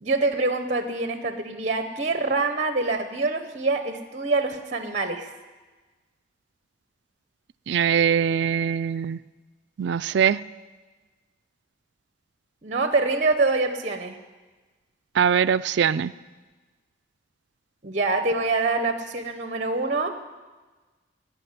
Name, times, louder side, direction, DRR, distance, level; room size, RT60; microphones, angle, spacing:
voice 1, 0.0-5.3 12.6-14.2 17.8-20.1, right 3 dB, 35° right, 8 dB, 0.8 m, -25 dB
voice 2, 7.7-9.2 9.8-10.4 15.2-16.1, right 7 dB, 65° right, 17 dB, 0.3 m, -22 dB
17.0 x 6.0 x 9.5 m, 1.3 s
head